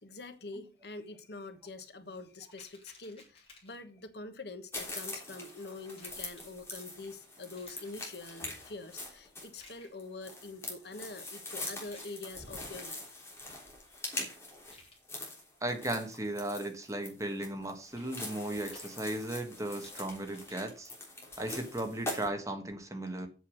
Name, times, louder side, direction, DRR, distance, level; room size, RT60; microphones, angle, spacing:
voice 1, 0.0-13.2, left 3 dB, 65° left, 1.3 m, -45 dB
sound 1, 2.5-3.9 5.4-6.5 7.6-8.0 9.5-10.0 11.7-12.2 14.6-15.0 17.8-18.1 18.6-20.6, left 3 dB, 35° left, 4.7 m, -58 dB
sound 2, 4.7-22.3, left 2 dB, 15° left, 3.3 m, -43 dB
voice 2, 15.6-20.9 21.4-23.3, right 1 dB, 20° right, 1.5 m, -36 dB
8.3 x 7.1 x 6.3 m
head